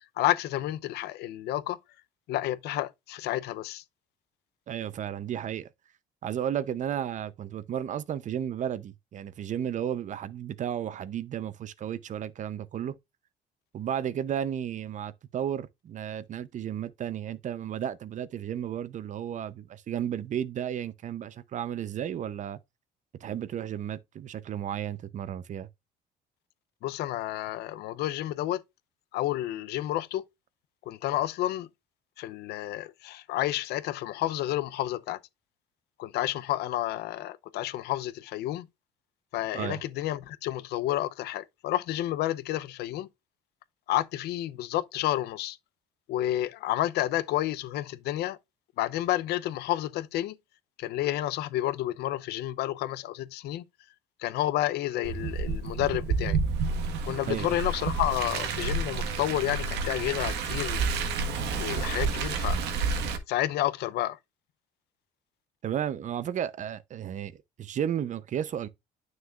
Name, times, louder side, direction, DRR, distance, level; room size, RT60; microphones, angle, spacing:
voice 1, 0.2-1.8 2.3-3.8 26.8-28.6 29.1-30.2 30.9-31.7 32.2-35.2 36.0-38.7 39.3-43.1 43.9-45.6 46.1-48.4 48.8-50.4 50.8-53.6 54.2-56.4 57.1-60.8 61.5-62.6 63.3-64.2, left 14 dB, 80° left, 0.6 m, -30 dB
voice 2, 4.7-5.7 6.2-13.0 13.7-22.6 23.2-25.7 39.5-39.8 57.3-57.5 65.6-68.7, right 9 dB, 45° right, 0.7 m, -33 dB
Car, 55.0-63.2, right 4 dB, 85° right, 1.5 m, -30 dB
9.5 x 6.3 x 2.4 m
cardioid pair, 110°, 17 cm